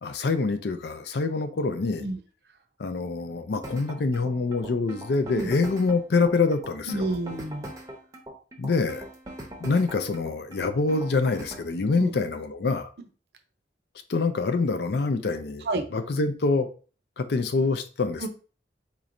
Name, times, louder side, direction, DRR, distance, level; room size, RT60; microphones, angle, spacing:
voice 1, 0.0-2.1 2.8-7.2 8.6-9.1 9.6-12.9 14.1-16.7 17.2-18.3, left 3 dB, 60° left, 8 dB, 0.4 m, -26 dB
sound 1, 3.6-11.7, right 1 dB, 20° right, 0.7 m, -41 dB
voice 2, 6.9-7.7 11.9-12.2 15.7-15.8 18.2-18.3, right 2 dB, 60° right, 6 dB, 0.6 m, -29 dB
4.2 x 3.0 x 2.5 m, 0.37 s
head